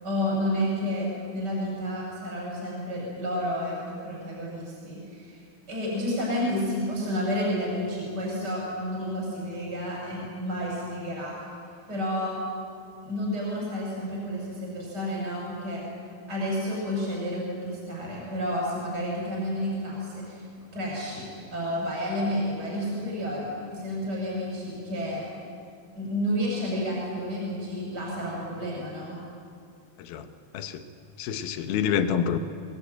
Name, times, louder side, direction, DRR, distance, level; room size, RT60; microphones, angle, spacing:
voice 1, 0.0-1.1 1.3-5.4 5.7-11.3 11.9-12.3 13.0-15.8 16.3-20.4 20.7-25.3 25.9-29.1, equal, 25° right, -3 dB, 7.2 m, -30 dB
voice 2, 30.0-30.3 30.5-30.8 31.2-32.4, left 8 dB, 75° left, 9 dB, 2.9 m, -27 dB
22.5 x 22.5 x 9.2 m, 2.4 s
omnidirectional pair, 4.5 m